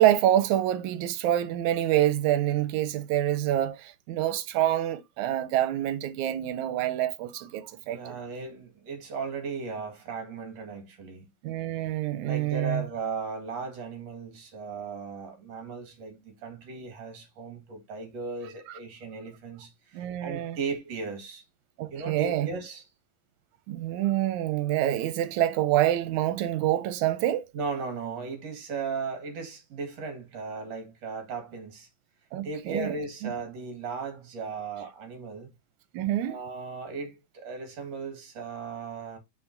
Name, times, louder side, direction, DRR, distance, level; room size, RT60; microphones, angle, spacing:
voice 1, 0.0-8.2 11.4-12.9 19.9-20.6 21.8-22.5 23.7-27.5 32.3-32.9 33.2-33.3 35.9-36.4, right 13 dB, 85° right, 2.1 m, -26 dB
voice 2, 7.9-11.3 12.2-21.4 21.9-22.8 27.5-31.9 32.4-35.5 36.3-39.2, right 4 dB, 65° right, 3.0 m, -36 dB
11.5 x 4.2 x 2.6 m
omnidirectional pair, 3.3 m